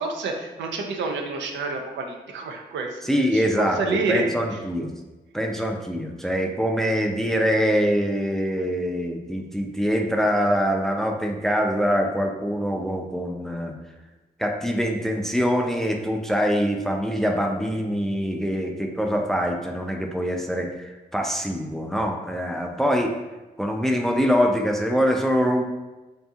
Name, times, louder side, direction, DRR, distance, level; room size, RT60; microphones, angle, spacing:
voice 1, 0.0-3.0 3.3-3.4 3.8-4.3, right 3 dB, 85° right, 3 dB, 0.4 m, -28 dB
voice 2, 3.0-4.9 5.3-13.8 14.4-23.1 23.6-25.6, equal, ahead, 3 dB, 0.3 m, -24 dB
2.6 x 2.6 x 2.2 m, 1.1 s
cardioid pair, 50°, 18 cm